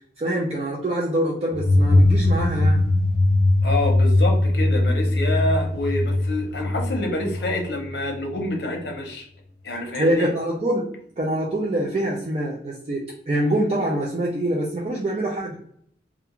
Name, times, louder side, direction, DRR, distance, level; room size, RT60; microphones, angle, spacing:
voice 1, 0.2-2.8 9.9-10.8 11.2-15.6, right 1 dB, 35° right, -3 dB, 0.4 m, -25 dB
sound 1, 1.5-8.1, left 2 dB, 40° left, 0.3 m, -20 dB
voice 2, 3.6-9.3 9.6-10.3, left 1 dB, 70° left, 2 dB, 0.7 m, -27 dB
2.4 x 2.3 x 2.8 m, 0.65 s
head